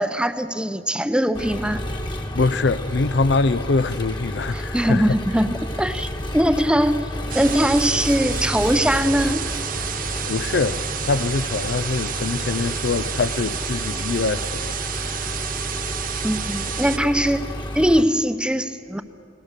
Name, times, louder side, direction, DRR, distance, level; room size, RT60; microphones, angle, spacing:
voice 1, 0.0-1.8 4.5-7.1 7.3-9.4 10.5-10.6 16.2-17.5 17.7-19.0, equal, 5° right, 0.7 m, -21 dB
Engine, 1.3-18.0, left 1 dB, 25° left, 1.5 m, -31 dB
voice 2, 2.4-5.1 10.3-15.0, left 3 dB, 65° left, 0.6 m, -24 dB
sound 1, 7.1-13.1, left 2 dB, 90° left, 3.2 m, -42 dB
sound 2, 7.3-17.0, right 10 dB, 50° right, 0.7 m, -30 dB
29.5 x 19.0 x 6.7 m
head